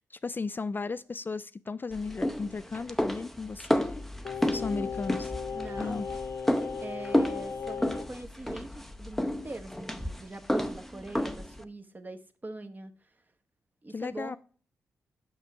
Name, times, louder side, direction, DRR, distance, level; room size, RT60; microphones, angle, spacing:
voice 1, 0.0-4.0 4.4-5.3 5.8-6.1 13.9-14.4, left 4 dB, 35° left, 0.3 m, -35 dB
sound 1, 1.9-11.6, left 1 dB, 5° left, 0.7 m, -31 dB
Singing, 4.2-8.1 8.4-8.5, left 6 dB, 60° left, 1.0 m, -37 dB
voice 2, 4.5-5.0 5.5-6.1 6.8-12.9 13.8-14.4, right 2 dB, 30° right, 1.1 m, -42 dB
5.9 x 5.5 x 4.6 m
supercardioid pair, 45°, 6 cm